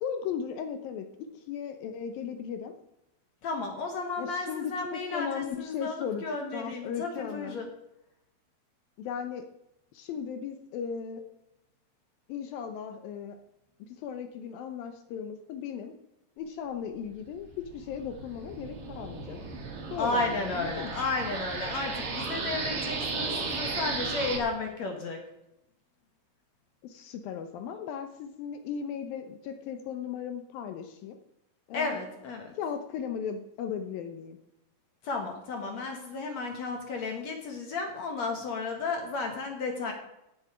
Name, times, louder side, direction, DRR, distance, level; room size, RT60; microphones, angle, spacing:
voice 1, 0.0-1.1 1.3-2.7 4.2-6.2 6.5-7.6 9.0-9.4 9.9-11.2 12.3-13.4 13.9-15.9 16.4-19.4 19.9-21.0 26.8-31.2 31.7-32.0 32.5-34.4, left 7 dB, 75° left, 7 dB, 2.2 m, -36 dB
voice 2, 3.4-7.7 20.0-25.2 31.7-32.5 35.0-39.9, left 3 dB, 55° left, 3 dB, 2.2 m, -33 dB
sound 1, 17.1-24.4, right 4 dB, 45° right, 2.1 m, -35 dB
14.5 x 9.7 x 5.0 m, 0.87 s
omnidirectional pair, 5.0 m